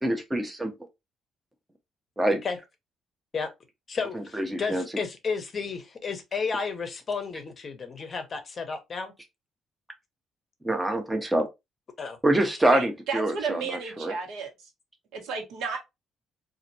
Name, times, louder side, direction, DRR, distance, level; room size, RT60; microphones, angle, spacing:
voice 1, 0.0-0.7 2.2-2.4 4.1-4.8 10.6-11.5 12.2-14.1, right 1 dB, 10° right, 0.5 m, -25 dB
voice 2, 3.9-9.1 12.0-12.2, left 5 dB, 30° left, 0.7 m, -32 dB
voice 3, 12.7-14.7 15.1-15.8, right 5 dB, 85° right, 1.1 m, -33 dB
4.1 x 2.5 x 2.6 m
cardioid pair, 165°, 0 cm